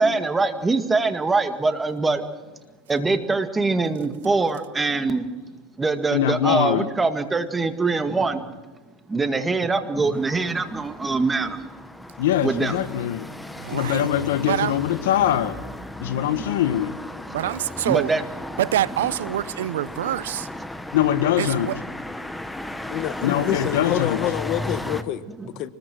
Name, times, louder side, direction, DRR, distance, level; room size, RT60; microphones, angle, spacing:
voice 1, 0.0-2.2 2.9-5.3 5.8-8.4 9.1-11.6 12.4-12.8 16.1-16.5 17.9-18.2 25.4-25.5, right 3 dB, 15° right, 1.9 m, -23 dB
voice 2, 6.1-6.9 12.2-13.3 13.7-15.6 16.0-17.0 20.9-21.7 23.2-24.2, left 11 dB, 80° left, 1.5 m, -22 dB
sound 1, 10.1-25.0, left 1 dB, 5° left, 1.2 m, -35 dB
voice 3, 13.6-14.1 14.5-14.8 17.3-18.1 18.6-20.5 21.4-21.8, right 12 dB, 90° right, 0.6 m, -25 dB
voice 4, 22.8-25.2 25.6-25.7, left 12 dB, 45° left, 1.2 m, -27 dB
25.0 x 20.5 x 6.2 m
supercardioid pair, 125°, 0 cm